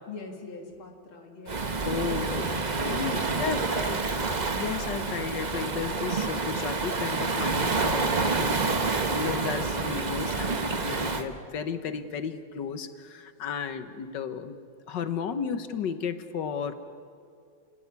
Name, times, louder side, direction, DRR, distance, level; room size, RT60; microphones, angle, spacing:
voice 1, 0.1-1.7 2.9-3.6, left 5 dB, 80° left, 2 dB, 2.8 m, -39 dB
Waves surf, 1.5-11.2, right 3 dB, 30° right, 0.9 m, -28 dB
voice 2, 1.8-3.0 3.4-4.0 4.6-14.6 14.9-16.7, left 6 dB, 60° left, 10 dB, 1.8 m, -34 dB
29.0 x 17.5 x 9.7 m, 2.3 s
omnidirectional pair, 2.2 m